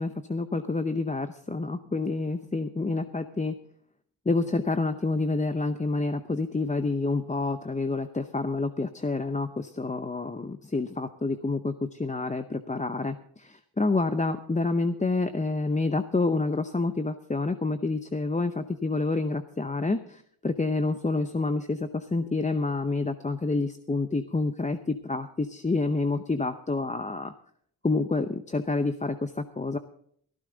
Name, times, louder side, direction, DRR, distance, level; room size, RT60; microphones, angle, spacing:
voice 1, 0.0-3.5 4.3-27.3 27.8-29.8, left 3 dB, 15° left, 9 dB, 0.7 m, -28 dB
15.5 x 14.0 x 3.9 m, 0.63 s
cardioid pair, 70°, 45 cm